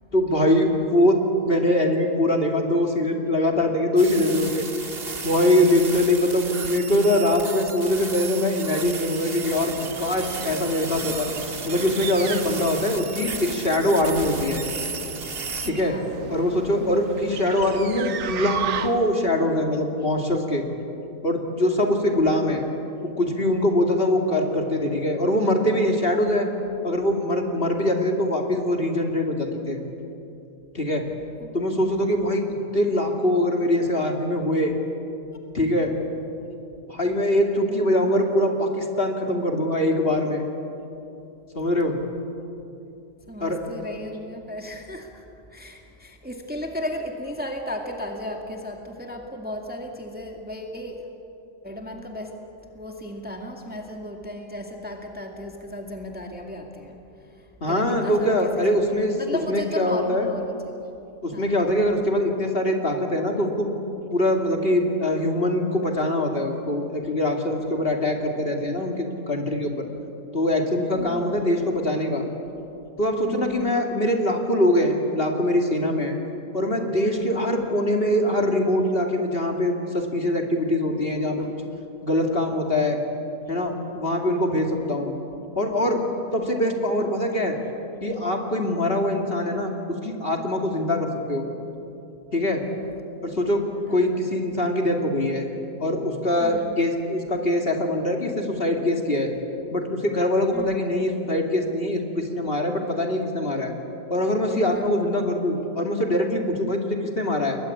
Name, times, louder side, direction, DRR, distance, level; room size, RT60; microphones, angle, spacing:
voice 1, 0.1-4.7 5.2-11.3 11.6-14.6 15.6-16.0 16.3-20.6 21.2-22.6 23.0-26.5 26.8-29.8 30.7-31.0 31.5-32.4 32.7-34.7 35.5-35.9 36.9-40.4 41.5-42.0 43.4-43.6 57.6-60.3 61.2-63.7 64.1-69.9 70.3-72.2 73.0-76.2 76.5-81.5 82.0-83.0 83.5-85.1 85.6-86.0 86.3-87.6 88.0-89.7 90.0-91.4 92.3-92.6 93.2-93.6 93.9-95.5 95.8-99.3 99.7-103.7 104.1-107.6, left 1 dB, 35° left, 2 dB, 2.8 m, -23 dB
sound 1, 4.0-15.7, right 4 dB, 40° right, 1.9 m, -34 dB
sound 2, 9.4-19.2, right 8 dB, 70° right, 1.5 m, -36 dB
voice 2, 15.6-16.1 16.8-17.1 22.0-22.3 31.4-32.2 43.3-45.2 45.5-51.2 51.6-52.3 52.7-57.0 57.7-58.8 59.2-60.5 61.3-61.6 71.0-71.4 73.2-73.7 77.2-77.7 81.4-81.5 93.3-93.6 93.9-94.0 96.4-96.8 100.5-100.8 104.7-105.0, left 1 dB, 5° right, 2 dB, 2.1 m, -35 dB
30.0 x 22.0 x 8.7 m, 2.8 s
omnidirectional pair, 1.6 m